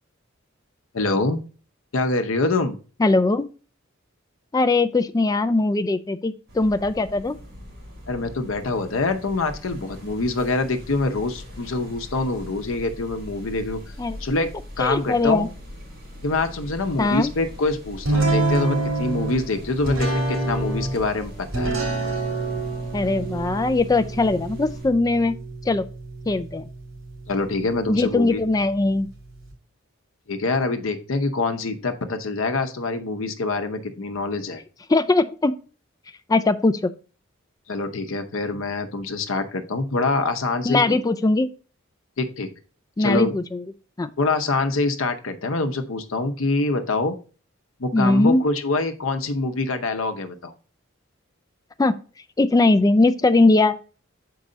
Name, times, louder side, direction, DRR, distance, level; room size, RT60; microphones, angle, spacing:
voice 1, 0.9-1.4 1.9-2.8 8.1-13.8 14.2-14.5 14.8-15.5 16.2-21.7 27.3-28.4 30.3-34.6 37.7-41.0 42.2-42.5 43.0-43.3 44.2-47.2 47.8-50.5, left 3 dB, 75° left, 7 dB, 0.8 m, -25 dB
voice 2, 3.0-3.5 4.5-7.4 14.0-14.2 14.8-15.5 17.0-17.3 22.9-25.4 25.7-25.9 26.3-26.6 27.9-29.1 34.9-35.5 36.3-36.9 40.6-41.5 43.0-43.6 44.0-44.1 47.9-48.4 51.8-51.9 52.4-53.8, left 2 dB, 20° left, 12 dB, 0.3 m, -20 dB
sound 1, 6.5-24.9, equal, 55° right, 3.5 m, -41 dB
sound 2, 18.0-29.5, right 2 dB, 85° right, 3.0 m, -28 dB
6.5 x 4.7 x 3.8 m, 0.37 s
head